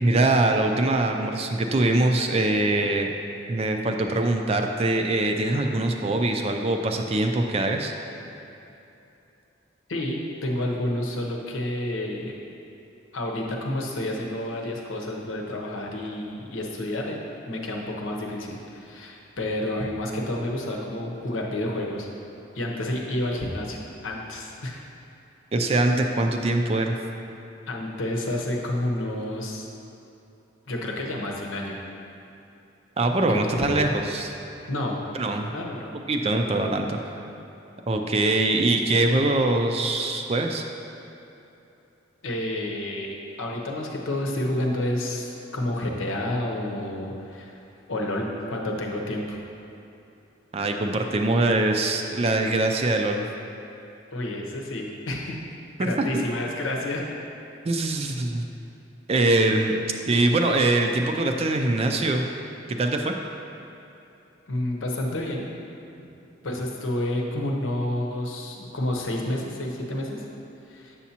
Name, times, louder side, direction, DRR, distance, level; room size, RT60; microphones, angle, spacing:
voice 1, 0.0-3.1 3.5-7.9 25.5-27.0 33.0-34.3 35.2-35.5 36.1-37.0 37.9-40.6 50.5-53.3 55.8-56.2 57.6-58.5 59.1-59.8 60.1-62.3 62.7-63.1, right 2 dB, 30° right, 4 dB, 0.4 m, -23 dB
voice 2, 9.9-12.3 13.1-17.2 17.5-22.1 22.5-24.8 27.7-29.7 30.7-31.8 33.3-33.8 34.7-35.0 35.5-35.9 42.2-47.5 47.9-49.4 54.1-55.4 55.8-57.1 64.5-65.4 66.0-66.1 66.4-70.3 70.7-71.0, left 1 dB, 85° left, 0 dB, 0.9 m, -29 dB
7.2 x 6.9 x 2.8 m, 2.9 s
head